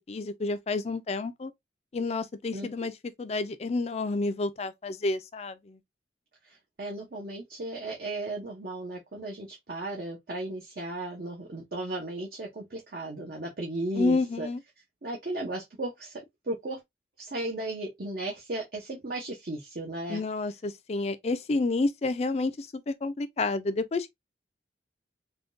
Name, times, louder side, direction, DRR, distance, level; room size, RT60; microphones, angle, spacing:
voice 1, 0.1-1.5 1.9-2.9 3.2-5.8 14.0-14.6 20.1-24.1, left 3 dB, 35° left, 0.4 m, -29 dB
voice 2, 6.4-14.5 15.0-16.8 17.2-20.2, right 2 dB, 55° right, 0.7 m, -35 dB
3.5 x 2.2 x 2.5 m
head